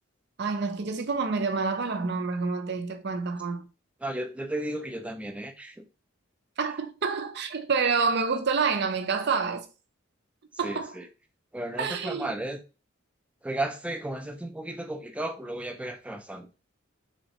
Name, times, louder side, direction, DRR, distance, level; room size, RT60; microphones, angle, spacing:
voice 1, 0.4-3.7 6.6-9.6 10.6-10.9 11.8-12.3, right 5 dB, 55° right, 0.5 m, -28 dB
voice 2, 4.0-5.9 10.6-11.1 11.5-12.6 13.4-16.5, right 1 dB, 5° right, 0.4 m, -34 dB
3.6 x 3.1 x 2.9 m
head